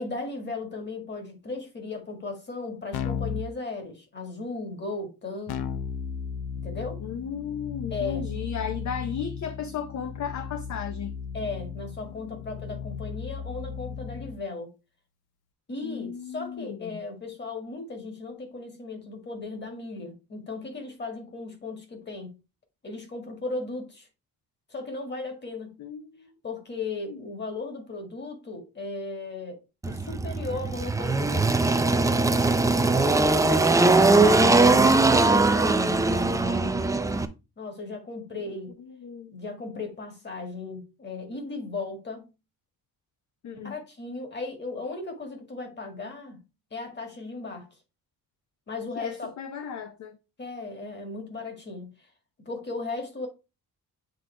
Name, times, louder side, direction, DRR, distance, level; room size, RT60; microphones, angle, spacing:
voice 1, 0.0-5.6 6.5-7.0 7.9-8.5 11.3-14.7 15.7-22.4 22.8-24.1 24.7-25.8 26.4-29.6 29.9-32.3 32.9-36.9 37.6-38.8 39.3-42.3 43.6-46.4 46.7-47.7 48.7-49.3 50.4-52.1 52.5-53.3, left 3 dB, 30° left, 1.8 m, -36 dB
Keyboard (musical), 2.9-3.5 5.5-14.4, left 7 dB, 85° left, 0.7 m, -35 dB
voice 2, 7.0-11.2 15.8-17.0 25.8-26.3 27.1-27.2 38.4-38.5 38.8-39.4 43.4-43.8 49.0-50.2, left 7 dB, 50° left, 0.7 m, -35 dB
Engine, 29.8-37.3, right 3 dB, 10° right, 0.4 m, -21 dB
7.8 x 3.8 x 3.3 m
wide cardioid pair, 160°, 37 cm